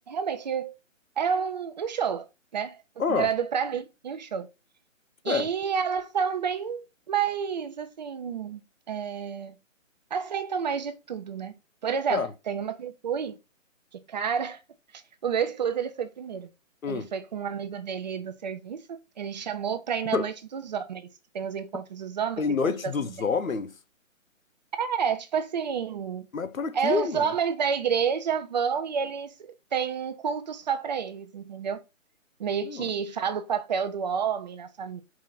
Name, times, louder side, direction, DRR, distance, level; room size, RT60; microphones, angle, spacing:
voice 1, 0.1-0.8 1.2-2.3 2.5-2.8 3.1-4.5 5.2-8.6 8.9-9.6 10.1-11.5 11.8-13.4 14.1-14.6 15.2-16.5 16.9-18.8 19.2-21.1 21.3-22.6 22.8-22.9 24.7-26.3 26.7-31.8 32.4-35.0, right 7 dB, 35° right, 0.7 m, -29 dB
voice 2, 22.4-23.7 26.3-27.3 32.7-32.9, left 5 dB, 85° left, 1.0 m, -27 dB
4.9 x 3.7 x 5.7 m
hypercardioid pair, 150°, 39 cm